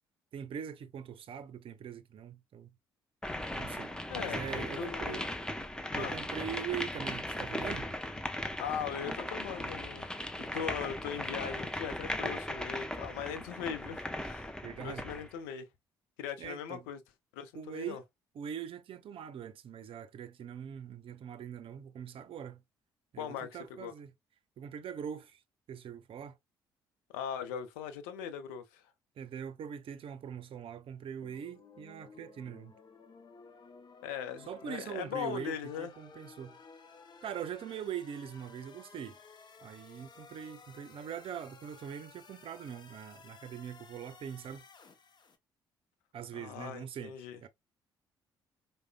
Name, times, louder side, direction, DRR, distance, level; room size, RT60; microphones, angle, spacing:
voice 1, 0.3-2.7 3.5-5.3 6.0-7.9 14.6-15.0 16.4-16.8 17.5-18.0 18.4-22.6 23.1-24.1 24.6-25.4 25.7-26.4 29.2-32.7 34.5-36.6 37.2-39.2 39.6-44.6 46.1-47.1 47.4-47.5, right 8 dB, 50° right, 0.6 m, -42 dB
sound 1, 3.2-15.3, left 1 dB, 5° left, 0.7 m, -38 dB
voice 2, 4.1-5.3 5.9-6.1 8.6-14.5 14.8-15.7 16.2-17.0 17.3-18.0 23.2-23.9 27.1-28.8 34.0-35.9 46.3-47.4, left 8 dB, 75° left, 0.6 m, -40 dB
sound 2, 31.2-45.4, left 4 dB, 40° left, 0.8 m, -55 dB
4.8 x 2.2 x 2.2 m
hypercardioid pair, 45°, 12 cm